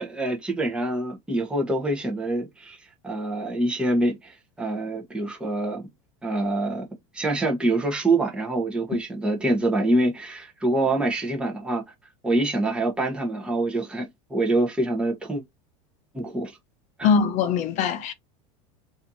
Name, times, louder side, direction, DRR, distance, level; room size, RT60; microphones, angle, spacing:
voice 1, 0.0-2.8 3.0-5.8 6.2-6.8 7.1-11.8 12.2-15.4 16.1-16.6 17.0-17.1, right 2 dB, 5° right, 1.0 m, -25 dB
voice 2, 17.0-18.1, left 6 dB, 45° left, 0.7 m, -22 dB
4.1 x 2.7 x 2.7 m
supercardioid pair, 135°, 17 cm